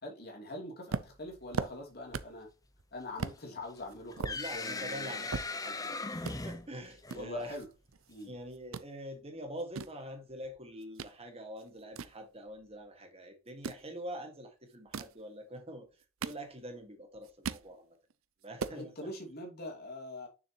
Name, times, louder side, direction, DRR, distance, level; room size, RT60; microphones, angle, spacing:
voice 1, 0.0-2.5 2.9-5.3 7.1-7.7 8.1-8.3 18.7-20.3, left 1 dB, 50° left, 2.9 m, -43 dB
sound 1, 0.9-2.5 2.8-2.9 3.2-3.4 3.9-5.9 6.2-6.4 7.1-8.3 8.5-8.9 9.5-11.2 11.6-12.9 13.5-13.9 14.7-15.2 15.8-16.8 17.1-17.7 18.1-18.2 18.4-18.8, right 5 dB, 85° right, 0.6 m, -39 dB
sound 2, 3.8-7.4, left 3 dB, 15° left, 0.8 m, -39 dB
voice 2, 4.2-7.6 8.2-17.9 18.4-19.1, equal, 30° right, 1.7 m, -45 dB
6.8 x 6.7 x 2.9 m
head